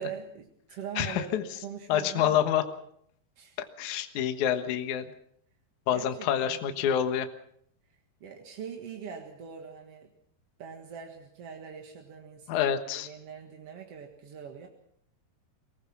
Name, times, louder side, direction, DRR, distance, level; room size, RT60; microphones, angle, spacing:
voice 1, 0.0-2.8 3.4-3.6 5.9-6.8 7.9-10.1 10.6-14.7, right 7 dB, 50° right, 3 dB, 2.0 m, -43 dB
voice 2, 1.0-1.4 1.9-2.6 3.8-5.1 5.9-7.3 12.5-13.1, left 10 dB, 60° left, 8 dB, 2.3 m, -27 dB
24.5 x 19.0 x 6.0 m, 0.69 s
omnidirectional pair, 4.6 m